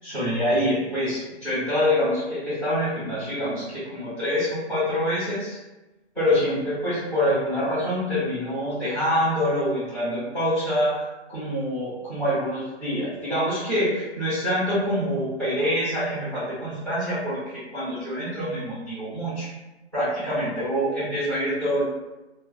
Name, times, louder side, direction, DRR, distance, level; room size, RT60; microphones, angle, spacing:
voice 1, 0.0-5.6 6.1-19.5 19.9-21.8, equal, 5° left, -20 dB, 1.0 m, -26 dB
3.2 x 2.1 x 2.3 m, 1.1 s
hypercardioid pair, 155°, 35 cm